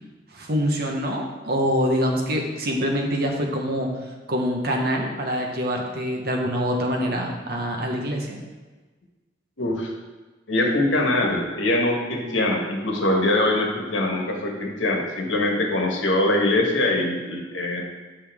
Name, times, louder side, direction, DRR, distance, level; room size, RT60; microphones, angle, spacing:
voice 1, 0.3-3.9 4.3-8.4, equal, 55° right, 1 dB, 1.1 m, -25 dB
voice 2, 9.6-9.9 10.5-17.8, left 1 dB, 85° left, 1 dB, 1.3 m, -23 dB
8.1 x 5.4 x 3.5 m, 1.3 s
head